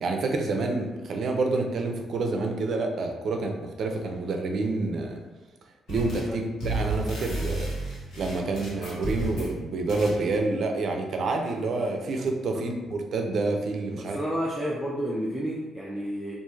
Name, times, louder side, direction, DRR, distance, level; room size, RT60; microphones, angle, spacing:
voice 1, 0.0-5.2 5.9-7.7 8.1-14.2, right 3 dB, 60° right, 3 dB, 0.4 m, -28 dB
sound 1, 5.9-6.3 6.6-9.5 9.9-10.2, right 2 dB, 70° left, 1.1 m, -32 dB
voice 2, 14.0-16.4, equal, 5° left, -5 dB, 0.4 m, -31 dB
3.0 x 2.5 x 2.3 m, 1.2 s
cardioid pair, 90°, 0 cm